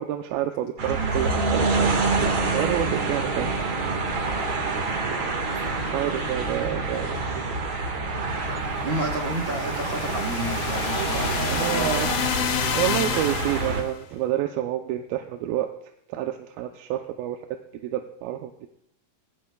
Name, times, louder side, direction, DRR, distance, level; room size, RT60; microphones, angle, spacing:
voice 1, 0.0-1.7 2.5-3.5 5.8-7.4 11.5-12.1 12.7-15.7 16.1-17.4 17.8-18.7, right 12 dB, 85° right, 5 dB, 2.5 m, -28 dB
sound 1, 0.8-13.8, right 3 dB, 45° right, 1.9 m, -27 dB
voice 2, 8.8-12.8, right 2 dB, 60° right, -2 dB, 1.2 m, -32 dB
sound 2, 8.9-13.9, left 10 dB, 75° left, 2.3 m, -30 dB
20.0 x 18.0 x 2.3 m, 0.76 s
omnidirectional pair, 4.2 m